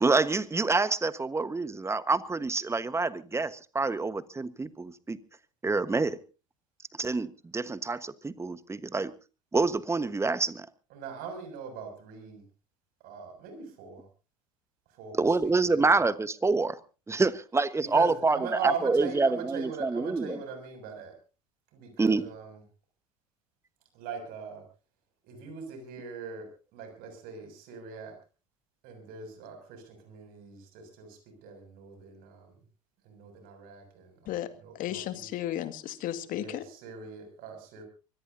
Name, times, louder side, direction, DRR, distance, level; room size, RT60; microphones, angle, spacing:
voice 1, 0.0-5.2 5.6-6.2 7.0-9.1 9.5-10.7 15.2-16.8 17.1-18.4 18.6-20.4 22.0-22.2, right 3 dB, 15° right, 15 dB, 1.3 m, -27 dB
voice 2, 10.9-12.4 13.0-14.1 14.9-16.0 17.8-21.1 21.7-22.6 23.9-24.6 25.2-28.1 28.8-32.5 33.0-35.3 36.3-37.8, right 6 dB, 60° right, 6 dB, 6.8 m, -40 dB
voice 3, 34.7-36.6, left 12 dB, 55° left, 12 dB, 2.0 m, -34 dB
24.0 x 18.0 x 2.7 m, 0.34 s
hypercardioid pair, 70°, 17 cm